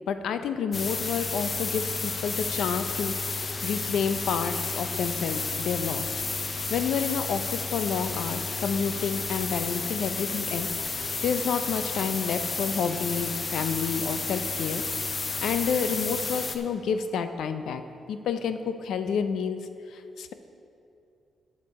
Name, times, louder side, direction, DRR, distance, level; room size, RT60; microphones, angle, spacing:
voice 1, 0.1-6.2 6.7-14.8 15.4-17.8 18.1-19.6 20.2-20.3, left 6 dB, 75° left, 9 dB, 0.5 m, -29 dB
sound 1, 0.7-16.6, left 4 dB, 30° left, 0.5 m, -31 dB
11.5 x 7.4 x 4.2 m, 2.6 s
wide cardioid pair, 160°, 0 cm